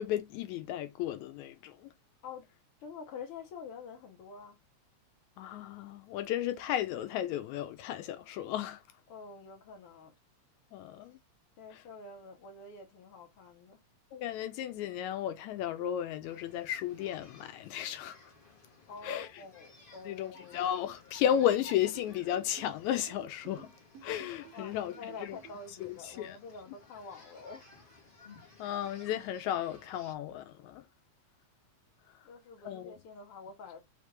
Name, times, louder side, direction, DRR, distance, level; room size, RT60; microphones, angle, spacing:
voice 1, 0.0-1.9 5.4-8.8 10.7-11.2 11.7-11.8 14.1-18.2 19.0-19.4 20.1-23.7 24.0-25.4 25.8-26.4 28.6-30.9 32.7-33.0, left 11 dB, 85° left, 2.0 m, -34 dB
voice 2, 2.8-4.6 9.1-10.1 11.6-13.8 18.9-20.7 24.5-27.7 32.2-33.8, left 5 dB, 65° left, 1.6 m, -47 dB
sound 1, 16.2-30.1, left 2 dB, 25° left, 1.3 m, -57 dB
sound 2, 21.6-25.6, right 10 dB, 70° right, 1.8 m, -53 dB
4.9 x 3.3 x 3.3 m
omnidirectional pair, 3.3 m